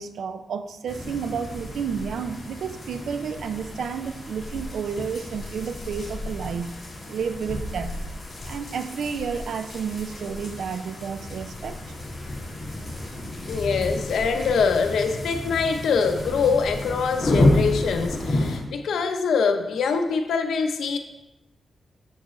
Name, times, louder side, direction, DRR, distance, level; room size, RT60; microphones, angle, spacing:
voice 1, 0.0-6.7 7.1-8.0 8.5-11.8, right 6 dB, 75° right, 10 dB, 0.4 m, -31 dB
sound 1, 0.9-18.6, left 1 dB, 30° left, 2.4 m, -30 dB
voice 2, 13.5-21.0, left 5 dB, 90° left, 6 dB, 0.7 m, -24 dB
7.2 x 6.5 x 3.1 m, 0.96 s
wide cardioid pair, 150°, 0 cm